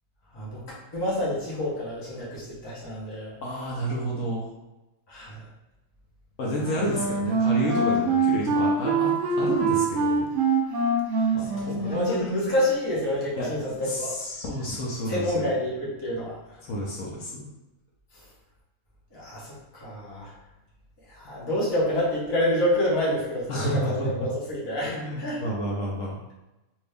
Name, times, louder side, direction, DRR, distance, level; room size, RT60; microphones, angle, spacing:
voice 1, 0.9-3.3 5.1-5.4 6.5-6.8 11.1-11.3 11.5-14.1 15.1-16.4 19.1-20.3 21.1-24.9 25.2-25.4, left 1 dB, 20° left, -7 dB, 0.8 m, -28 dB
voice 2, 3.4-4.5 6.4-10.3 11.3-12.2 13.4-15.5 16.6-17.5 23.5-24.3 24.9-26.2, equal, 65° left, -3 dB, 0.9 m, -30 dB
Wind instrument woodwind instrument, 6.6-12.4, right 3 dB, 65° right, 0.8 m, -24 dB
2.7 x 2.6 x 3.3 m, 0.99 s
omnidirectional pair, 1.5 m